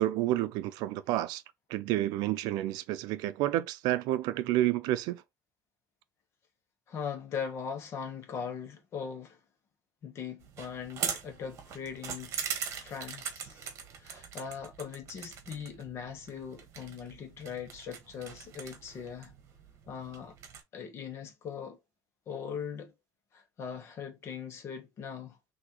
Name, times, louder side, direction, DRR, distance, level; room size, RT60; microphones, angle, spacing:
voice 1, 0.0-1.4 1.7-5.2, right 14 dB, 80° right, 0.5 m, -29 dB
voice 2, 6.9-9.4 10.0-12.3 12.8-13.7 14.0-19.3 19.9-20.4 20.7-21.8 22.3-22.9 23.3-25.4, left 7 dB, 40° left, 1.3 m, -40 dB
sound 1, 10.4-20.6, right 7 dB, 45° right, 1.3 m, -41 dB
6.1 x 2.8 x 3.0 m
cardioid pair, 165°, 7 cm